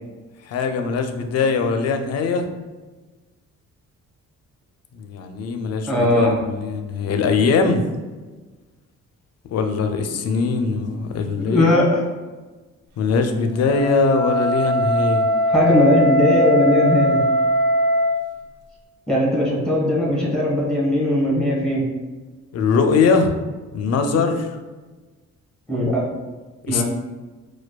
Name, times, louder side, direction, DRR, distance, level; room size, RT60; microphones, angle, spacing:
voice 1, 0.5-2.5 4.9-7.8 9.5-11.7 13.0-15.3 22.5-23.4 23.7-24.6 26.7-26.8, left 4 dB, 55° left, 6 dB, 0.5 m, -21 dB
voice 2, 5.8-6.4 11.4-12.0 15.5-17.2 19.1-21.9 25.7-26.0 26.7-26.8, left 1 dB, 5° left, -4 dB, 1.2 m, -19 dB
Wind instrument woodwind instrument, 13.6-18.2, equal, 75° right, 0.6 m, -20 dB
4.4 x 2.2 x 2.3 m, 1.3 s
cardioid pair, 90°, 30 cm